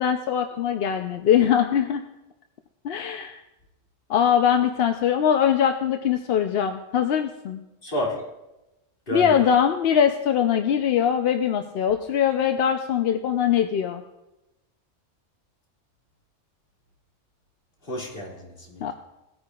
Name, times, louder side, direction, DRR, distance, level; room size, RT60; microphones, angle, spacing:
voice 1, 0.0-2.0 2.8-3.4 4.1-7.6 9.1-14.0 18.8-18.9, left 8 dB, 60° left, 0.7 m, -22 dB
voice 2, 7.8-8.2 9.1-9.5 17.8-18.9, equal, 45° left, 2.3 m, -31 dB
18.0 x 9.6 x 2.3 m
omnidirectional pair, 1.3 m